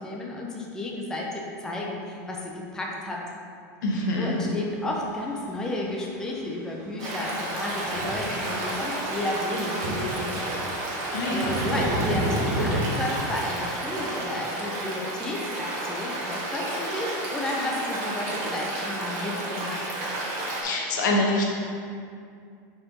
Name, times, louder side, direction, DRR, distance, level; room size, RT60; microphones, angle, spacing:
voice 1, 0.0-3.2 4.2-10.4 10.8-11.0 11.3-19.9, left 1 dB, 5° left, -2 dB, 0.5 m, -32 dB
voice 2, 3.8-4.4 11.1-11.6 20.6-21.4, left 1 dB, 90° left, -2 dB, 1.2 m, -25 dB
Stream, 7.0-20.6, right 1 dB, 40° right, 1.2 m, -31 dB
sound 1, 7.2-7.5 7.8-8.4 9.0-9.1 9.5-10.2 10.5-12.8, right 1 dB, 90° right, 1.3 m, -29 dB
4.4 x 4.3 x 5.1 m, 2.3 s
supercardioid pair, 160°, 10 cm